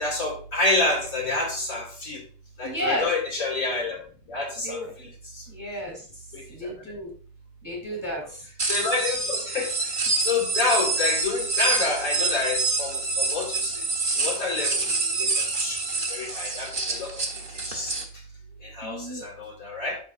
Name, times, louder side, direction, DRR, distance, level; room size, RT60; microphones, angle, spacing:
voice 1, 0.0-2.2 2.6-5.1 5.3-5.4 6.3-6.7 8.6-13.7 14.2-15.8 16.1-18.0 18.6-20.0, left 3 dB, 70° left, -2 dB, 3.2 m, -28 dB
voice 2, 2.6-3.1 4.6-4.9 5.5-6.0 6.5-7.1 7.6-8.4 10.1-10.2 18.8-19.2, equal, 10° left, -1 dB, 3.2 m, -32 dB
sound 1, 8.6-18.0, right 3 dB, 40° right, 1.3 m, -27 dB
12.0 x 4.4 x 2.5 m, 0.42 s
omnidirectional pair, 1.5 m